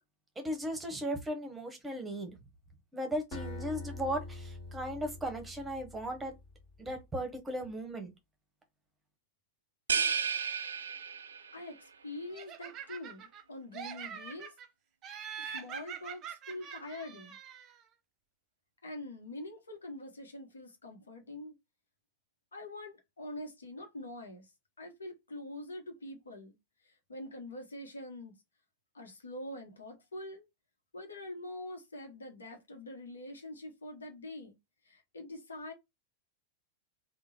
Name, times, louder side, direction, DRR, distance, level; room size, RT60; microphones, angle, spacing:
voice 1, 0.4-2.3 2.9-6.3 6.8-8.1, equal, 10° right, 1.1 m, -37 dB
Acoustic guitar, 3.3-6.3, left 2 dB, 45° left, 1.8 m, -44 dB
sound 1, 9.9-11.6, right 6 dB, 70° right, 0.4 m, -32 dB
voice 2, 11.5-14.5 15.4-17.4 18.8-21.5 22.5-24.5 24.8-26.6 26.8-28.3 28.9-30.4 30.9-34.6 34.8-35.7, left 1 dB, 75° left, 1.1 m, -44 dB
Laughter, 12.3-13.4 13.7-14.7 15.0-17.8, right 8 dB, 30° right, 0.7 m, -44 dB
3.6 x 2.4 x 4.2 m
figure-of-eight pair, 90°, 0 cm